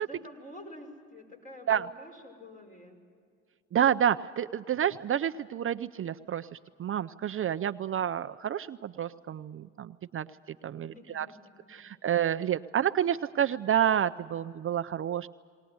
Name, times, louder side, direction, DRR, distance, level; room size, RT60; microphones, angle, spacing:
voice 1, 0.0-3.0 10.7-11.8, left 1 dB, 25° left, 2 dB, 5.9 m, -48 dB
voice 2, 3.7-11.3 11.7-15.3, right 9 dB, 45° right, 10 dB, 0.5 m, -29 dB
20.5 x 19.5 x 9.5 m, 2.1 s
cardioid pair, 90°, 30 cm